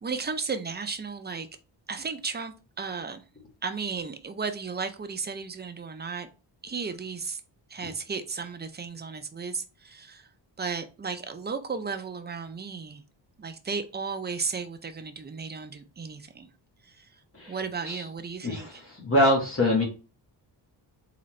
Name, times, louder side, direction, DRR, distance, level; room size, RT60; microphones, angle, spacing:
voice 1, 0.0-1.5 1.9-3.2 3.6-6.3 6.6-7.4 7.7-10.3 10.6-13.0 13.4-16.5 16.8-17.1 17.5-18.8, right 5 dB, 25° right, 0.5 m, -34 dB
voice 2, 18.4-19.8, left 1 dB, 30° left, 1.7 m, -24 dB
3.9 x 3.8 x 3.2 m
wide cardioid pair, 125°, 44 cm